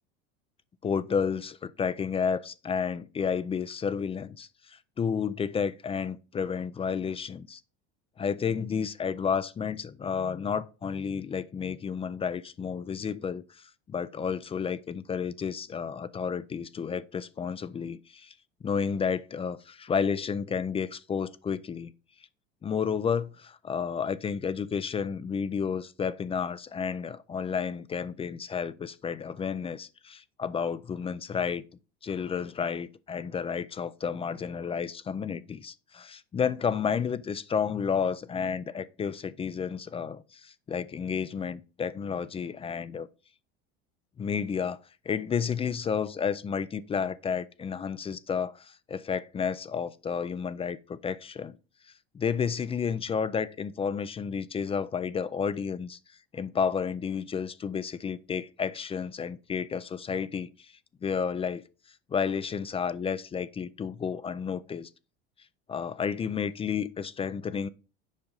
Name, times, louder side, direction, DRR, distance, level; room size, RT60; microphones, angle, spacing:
voice 1, 0.8-7.6 8.2-18.3 18.6-21.9 22.6-31.6 32.0-43.1 44.2-51.6 52.1-56.0 56.3-60.7 61.0-61.6 62.1-64.9 65.7-67.7, left 6 dB, 20° left, 0.4 m, -31 dB
7.2 x 5.1 x 3.8 m
supercardioid pair, 100°, 30 cm